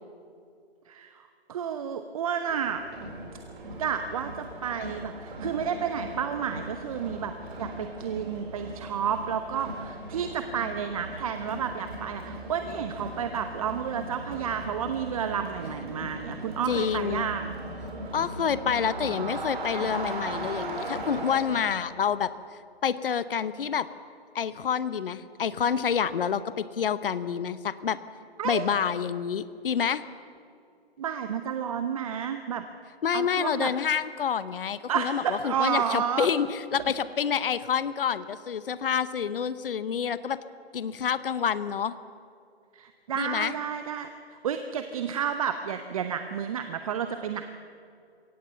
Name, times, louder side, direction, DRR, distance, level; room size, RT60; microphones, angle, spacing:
voice 1, 1.5-2.8 3.8-17.5 28.4-28.9 31.0-32.7 33.1-33.7 34.9-36.3 42.7-47.4, right 8 dB, 35° right, 8 dB, 0.8 m, -31 dB
Crowd, 2.5-21.9, right 1 dB, 50° right, 4.3 m, -38 dB
voice 2, 16.7-17.3 18.1-22.3 22.8-23.9 24.3-28.0 28.4-30.0 33.0-40.4 40.7-41.9 43.1-43.5, left 7 dB, 55° left, 15 dB, 1.0 m, -28 dB
22.5 x 17.5 x 6.9 m, 2.5 s
figure-of-eight pair, 145°, 32 cm